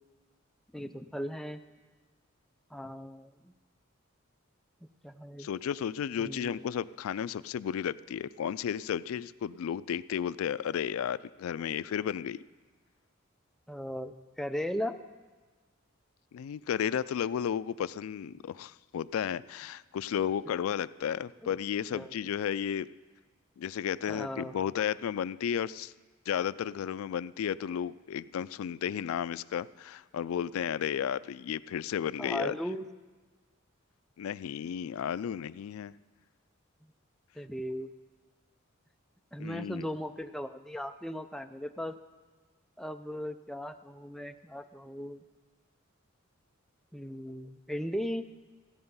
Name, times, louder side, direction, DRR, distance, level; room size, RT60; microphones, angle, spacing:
voice 1, 0.7-1.6 2.7-3.5 5.0-5.5 6.2-6.7 13.7-15.0 21.9-22.1 24.1-24.5 32.2-32.9 37.4-37.9 39.3-42.0 42.8-45.2 46.9-48.3, equal, ahead, 8 dB, 0.4 m, -37 dB
voice 2, 5.4-12.4 16.3-22.9 23.6-25.9 26.3-32.6 34.2-35.9 39.4-39.8, left 8 dB, 80° left, 17 dB, 0.3 m, -33 dB
15.0 x 8.6 x 5.5 m, 1.4 s
head